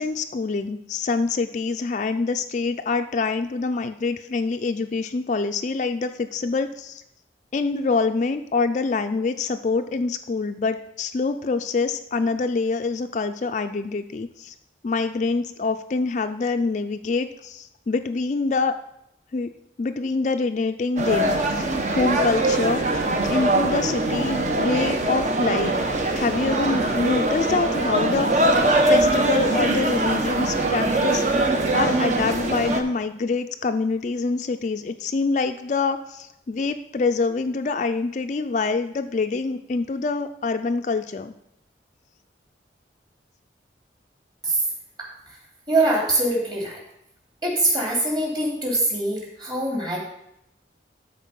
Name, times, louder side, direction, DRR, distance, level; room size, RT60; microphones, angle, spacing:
voice 1, 0.0-7.0 7.5-14.5 14.8-18.7 19.3-19.5 19.8-21.7 21.9-23.0 23.3-25.9 26.1-31.2 31.7-41.3, left 4 dB, 45° left, 8 dB, 0.4 m, -25 dB
sound 1, 21.0-32.8, right 2 dB, 40° right, 0.9 m, -22 dB
voice 2, 45.7-46.8 47.4-50.0, right 2 dB, 25° right, -3 dB, 2.8 m, -23 dB
12.5 x 4.3 x 5.4 m, 0.80 s
head